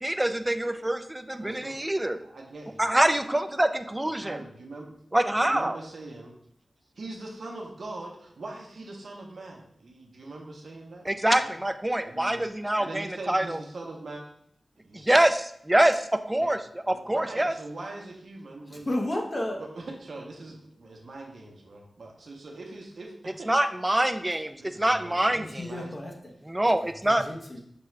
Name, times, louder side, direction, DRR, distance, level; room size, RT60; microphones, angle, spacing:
voice 1, 0.0-2.2 2.8-4.4 5.1-5.8 11.1-13.6 14.9-17.5 23.5-25.7 26.5-27.2, right 1 dB, 15° right, 9 dB, 0.4 m, -25 dB
voice 2, 1.4-1.8 2.0-2.9 4.2-4.9 5.4-6.3 7.0-11.1 11.3-11.5 12.0-12.4 12.8-14.2 14.8-15.2 16.4-16.6 16.8-18.9 19.6-23.5 24.6-25.9, right 2 dB, 75° right, 0 dB, 0.8 m, -42 dB
voice 3, 18.7-19.6 25.3-26.3 26.8-27.6, left 1 dB, 40° left, 1 dB, 0.9 m, -33 dB
6.0 x 2.3 x 3.1 m, 0.69 s
cardioid pair, 55°, 0 cm